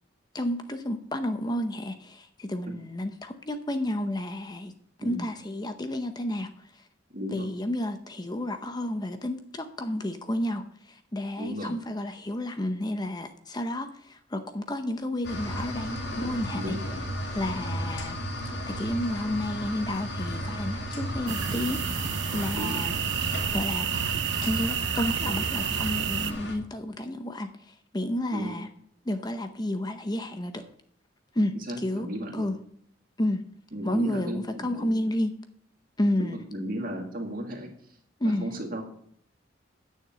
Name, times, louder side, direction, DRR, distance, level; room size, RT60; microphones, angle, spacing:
voice 1, 0.3-4.7 5.0-6.8 7.3-16.7 17.3-18.2 18.4-22.9 23.5-23.9 24.4-28.7 29.1-30.6 31.3-32.1 32.3-32.5 33.2-33.4 33.8-35.3 36.0-36.4 38.2-38.5, left 1 dB, 20° left, 8 dB, 0.7 m, -31 dB
voice 2, 7.1-7.5 11.4-11.7 16.6-17.0 21.3-21.4 22.5-22.8 28.3-28.6 31.7-32.5 33.7-34.9 36.2-37.7 38.2-38.8, equal, 50° right, 2 dB, 2.2 m, -35 dB
sound 1, 15.2-26.6, equal, 65° left, 2.4 m, -34 dB
sound 2, 21.3-26.3, right 8 dB, 70° right, 0.7 m, -30 dB
9.9 x 6.6 x 7.6 m, 0.65 s
head